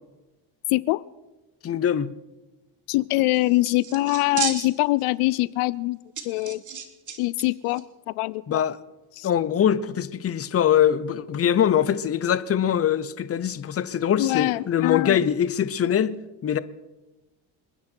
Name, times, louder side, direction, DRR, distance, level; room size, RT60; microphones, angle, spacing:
voice 1, 0.7-1.0 2.9-6.0 6.2-6.6 7.2-8.6 9.2-9.3 14.2-15.2, left 19 dB, 85° left, 0.6 m, -24 dB
voice 2, 1.6-2.1 8.5-8.8 9.2-16.6, left 9 dB, 30° left, 0.7 m, -23 dB
sound 1, 3.3-5.0 5.3-5.4 6.2-7.4 7.7-7.8, right 6 dB, 35° right, 1.7 m, -33 dB
28.0 x 10.5 x 4.5 m
cardioid pair, 115°, 49 cm